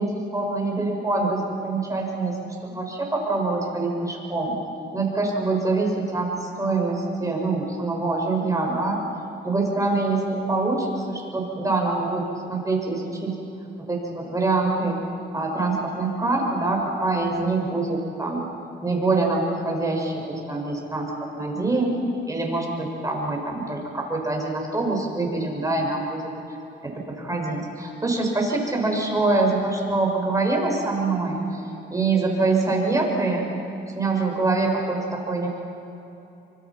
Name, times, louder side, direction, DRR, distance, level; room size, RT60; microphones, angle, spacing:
voice 1, 0.0-4.6 4.9-9.0 9.4-13.3 13.9-15.0 15.3-18.5 18.8-21.9 22.3-26.3 26.8-31.6 31.9-33.5 33.9-35.5, right 3 dB, 15° right, 0 dB, 6.3 m, -25 dB
25.5 x 24.5 x 6.0 m, 2.9 s
cardioid pair, 90°, 20 cm